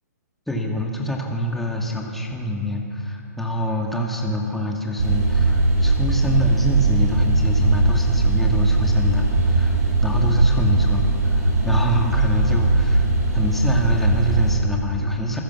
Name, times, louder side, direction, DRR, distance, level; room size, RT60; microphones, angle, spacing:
voice 1, 0.5-13.1 13.3-15.4, equal, ahead, -1 dB, 2.2 m, -25 dB
sound 1, 5.0-14.5, right 2 dB, 60° right, 6.8 m, -19 dB
26.5 x 14.5 x 7.2 m, 3.0 s
hypercardioid pair, 130°, 10 cm